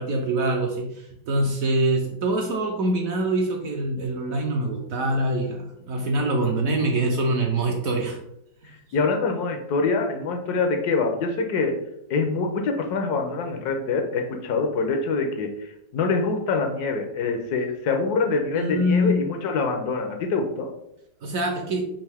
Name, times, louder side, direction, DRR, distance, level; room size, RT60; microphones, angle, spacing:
voice 1, 0.0-8.2 18.5-19.2 21.2-21.8, right 1 dB, 65° right, 1 dB, 0.9 m, -24 dB
voice 2, 8.9-11.7 12.1-20.7, left 4 dB, 70° left, 4 dB, 1.1 m, -25 dB
5.4 x 2.5 x 3.4 m, 0.81 s
omnidirectional pair, 1.9 m